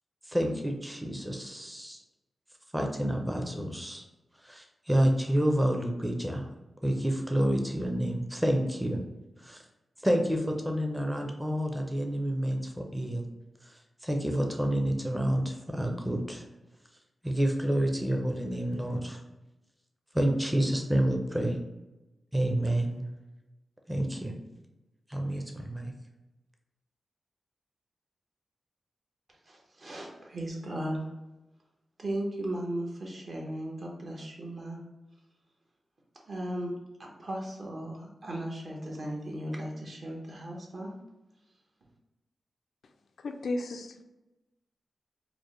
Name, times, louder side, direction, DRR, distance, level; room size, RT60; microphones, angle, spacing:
voice 1, 0.3-2.0 2.7-4.0 4.4-6.5 6.8-9.0 9.4-9.6 10.0-13.2 13.6-16.4 17.2-19.2 20.1-21.6 22.3-23.1 23.9-24.3 25.1-25.9, right 1 dB, 10° right, 2 dB, 0.6 m, -29 dB
voice 2, 29.4-31.1 32.0-34.8 36.3-36.7 37.0-40.9, right 1 dB, 50° right, -1 dB, 1.0 m, -36 dB
voice 3, 43.2-44.0, left 2 dB, 80° left, 6 dB, 0.3 m, -34 dB
4.9 x 2.1 x 3.1 m, 1.0 s
wide cardioid pair, 100°, 0 cm